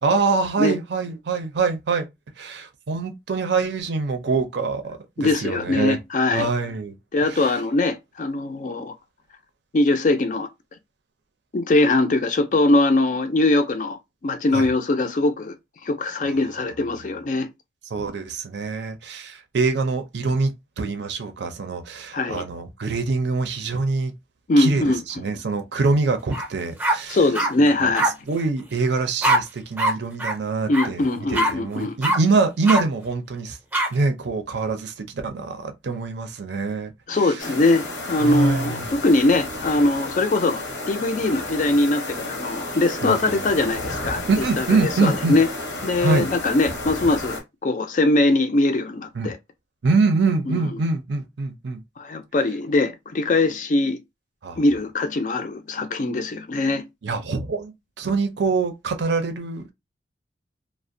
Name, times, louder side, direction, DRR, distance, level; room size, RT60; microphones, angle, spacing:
voice 1, 0.0-2.1 2.4-6.0 6.3-7.6 14.5-14.7 16.2-16.4 17.9-20.5 20.8-24.1 24.6-27.2 27.6-27.9 28.3-31.0 31.3-33.6 33.9-37.4 38.2-38.9 43.0-43.4 44.3-45.4 46.0-46.3 49.2-49.3 49.8-51.8 54.4-54.6 57.0-59.7, right 4 dB, 65° right, 0.5 m, -24 dB
voice 2, 5.2-6.5 7.1-8.9 9.7-10.5 11.5-15.5 15.8-17.5 22.1-22.4 24.5-25.0 27.1-28.1 30.7-31.9 37.1-44.2 44.6-45.5 45.8-49.4 50.5-50.6 52.0-54.0 54.6-56.8, left 2 dB, 45° left, 0.4 m, -21 dB
sound 1, 26.3-26.5 26.8-27.5 27.9-28.1 29.2-29.4 29.8-29.9 30.2-30.3 30.7-30.9 31.3-31.5 32.0-32.2 32.6-32.8 33.7-33.9, right 1 dB, 10° right, 0.5 m, -21 dB
sound 2, 37.4-47.4, left 2 dB, 85° left, 0.8 m, -32 dB
2.4 x 2.1 x 2.5 m
head